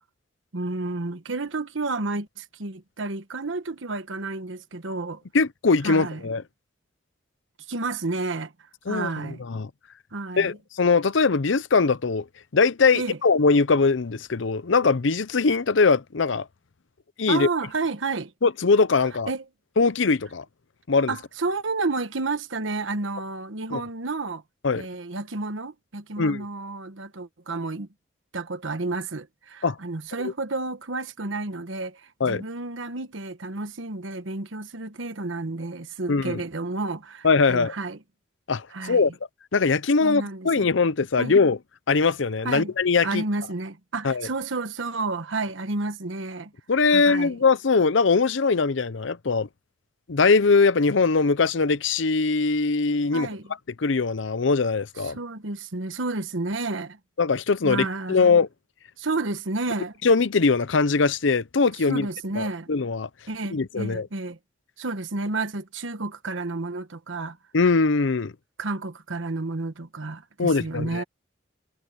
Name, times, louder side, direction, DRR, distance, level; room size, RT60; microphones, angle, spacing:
voice 1, 0.5-5.2 5.8-6.2 7.7-8.5 8.9-9.4 10.1-10.6 12.9-13.2 17.3-18.3 19.3-19.4 21.1-24.4 24.8-27.9 28.3-38.0 38.7-39.1 40.0-40.7 41.2-41.4 42.4-42.7 43.0-46.5 46.9-47.4 53.1-53.5 55.0-57.0 57.6-58.4 59.0-59.9 61.9-62.7 63.3-64.4 64.8-67.4 68.6-71.0, right 3 dB, 85° right, 1.2 m, -31 dB
voice 2, 5.3-6.4 8.9-9.7 10.4-12.2 12.5-16.5 17.2-17.5 18.4-19.3 19.8-20.4 20.9-21.1 23.7-23.8 24.6-24.8 26.2-26.5 29.6-29.8 32.2-32.4 36.1-36.4 37.2-37.7 38.5-39.1 39.5-41.6 41.9-43.2 44.0-44.3 46.7-49.5 50.1-53.3 53.8-55.2 57.2-58.5 60.0-62.1 62.4-63.1 63.5-64.1 67.5-68.3 70.4-71.0, left 4 dB, 80° left, 0.7 m, -21 dB
head